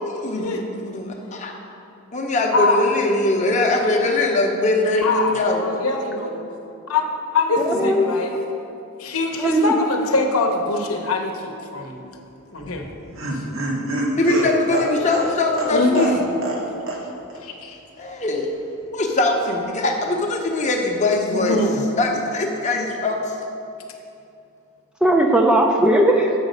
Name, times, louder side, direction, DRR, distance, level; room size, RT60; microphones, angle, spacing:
voice 1, 0.0-1.6 2.1-5.8 6.5-6.6 14.2-16.2 16.6-16.7 18.0-18.5 18.9-21.6 22.0-23.3, left 2 dB, 35° left, 1 dB, 0.7 m, -22 dB
voice 2, 5.0-6.4 6.9-7.0 7.3-8.3 9.0-12.1 12.5-12.8 13.3-13.4 15.7-16.1 17.4-17.8 21.3-21.8, left 3 dB, 75° left, 3 dB, 0.8 m, -23 dB
voice 3, 7.6-8.1 9.4-9.7 25.0-26.3, right 1 dB, 5° right, 1 dB, 0.3 m, -17 dB
Laughter, 12.6-16.6 16.9-17.0 17.3-17.4, right 2 dB, 65° right, 1.0 m, -26 dB
7.2 x 5.0 x 5.1 m, 2.7 s
head